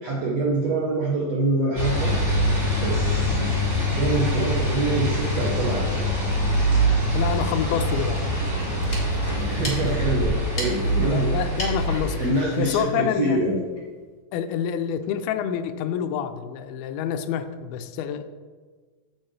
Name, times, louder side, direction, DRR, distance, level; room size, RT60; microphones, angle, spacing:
voice 1, 0.0-2.1 2.8-3.5 3.9-6.1 9.4-11.3 12.2-13.6, right 2 dB, 75° right, -3 dB, 1.5 m, -25 dB
sound 1, 1.8-12.9, equal, 20° right, 2.4 m, -24 dB
sound 2, 4.3-4.6 5.2-5.3 5.6-5.7 6.0-6.1 8.1-8.2 8.5-8.9 9.5-10.9, left 2 dB, 65° left, 1.2 m, -31 dB
voice 2, 7.1-8.2 11.0-12.2 12.6-13.4 14.3-18.2, left 9 dB, 90° left, 9 dB, 2.5 m, -27 dB
sound 3, 8.6-13.9, equal, 20° left, 1.0 m, -38 dB
8.8 x 7.9 x 3.2 m, 1.5 s
omnidirectional pair, 4.3 m